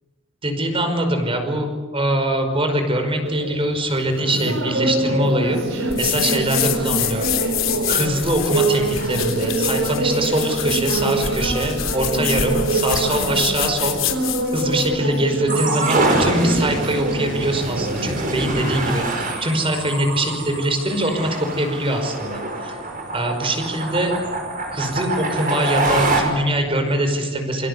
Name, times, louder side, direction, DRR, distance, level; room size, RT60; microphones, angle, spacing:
voice 1, 0.4-7.3 7.9-22.8 23.1-24.1 24.7-27.7, right 1 dB, 25° right, 6 dB, 5.3 m, -23 dB
sound 1, 3.3-21.7, right 2 dB, 75° right, 4.6 m, -25 dB
sound 2, 5.9-14.9, left 10 dB, 80° left, 3.7 m, -26 dB
sound 3, 15.5-26.2, right 2 dB, 45° right, 6.5 m, -25 dB
27.5 x 25.5 x 8.4 m, 1.4 s
head